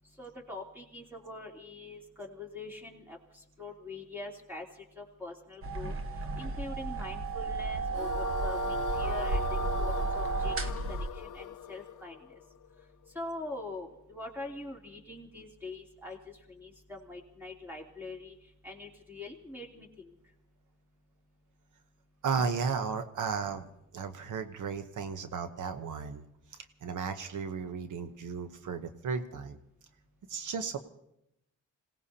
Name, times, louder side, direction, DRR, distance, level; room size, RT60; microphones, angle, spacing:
voice 1, 0.2-4.7 5.0-5.9 6.4-12.4 13.1-18.3 18.6-20.1, left 2 dB, 5° right, -1 dB, 3.1 m, -43 dB
sound 1, 5.6-11.1, right 3 dB, 45° right, 1.2 m, -32 dB
sound 2, 7.9-13.2, left 10 dB, 75° left, 0.7 m, -40 dB
voice 2, 22.2-26.2 26.8-29.6 30.3-30.8, right 5 dB, 75° right, 8 dB, 1.0 m, -34 dB
27.0 x 17.5 x 2.8 m, 0.83 s
cardioid pair, 95°, 31 cm